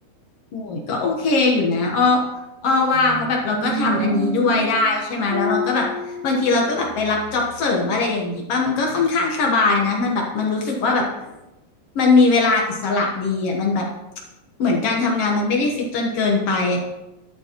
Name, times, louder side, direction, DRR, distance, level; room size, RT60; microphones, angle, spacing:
voice 1, 0.5-2.2 2.6-5.9 6.2-11.1 11.9-13.9 14.6-16.8, left 3 dB, 65° left, -1 dB, 1.5 m, -20 dB
sound 1, 2.7-7.7, right 3 dB, 80° right, 2.9 m, -30 dB
11.5 x 9.3 x 3.0 m, 0.97 s
omnidirectional pair, 4.3 m